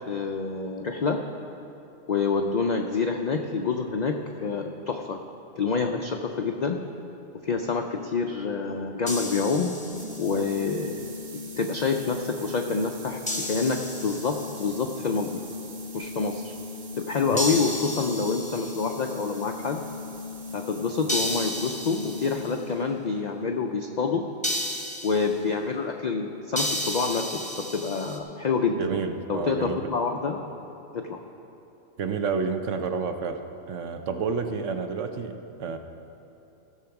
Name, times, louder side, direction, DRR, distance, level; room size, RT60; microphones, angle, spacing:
voice 1, 0.1-1.2 2.1-4.1 4.4-5.2 5.6-6.8 7.4-9.7 10.2-11.0 11.6-15.4 15.9-16.5 17.0-19.8 20.5-24.2 25.0-28.9 29.3-30.4 30.9-31.2, left 4 dB, 60° left, 3 dB, 0.4 m, -27 dB
sound 1, 9.1-10.5 13.3-14.8 17.4-19.2 21.1-22.5 24.4-25.4 26.5-28.2, equal, 5° left, 0.7 m, -33 dB
sound 2, 9.9-22.8, left 3 dB, 40° right, 0.8 m, -39 dB
voice 2, 28.8-29.9 32.0-33.4 33.7-35.8, right 5 dB, 70° right, 7 dB, 1.0 m, -29 dB
15.5 x 6.4 x 5.8 m, 3.0 s
omnidirectional pair, 1.4 m